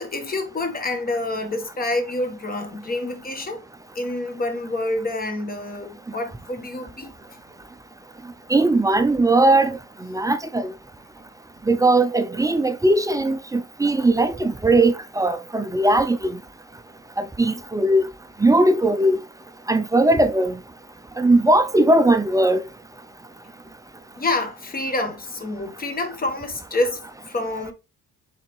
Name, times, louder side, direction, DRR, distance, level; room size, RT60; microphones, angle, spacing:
voice 1, 0.0-3.6 3.9-7.1 24.2-27.7, left 2 dB, 30° left, 1.3 m, -27 dB
voice 2, 8.5-10.7 11.7-16.4 17.2-18.1 18.4-19.2 19.7-20.6 21.2-22.6, right 2 dB, 10° right, 0.4 m, -19 dB
4.2 x 4.0 x 3.1 m
cardioid pair, 90°, 30 cm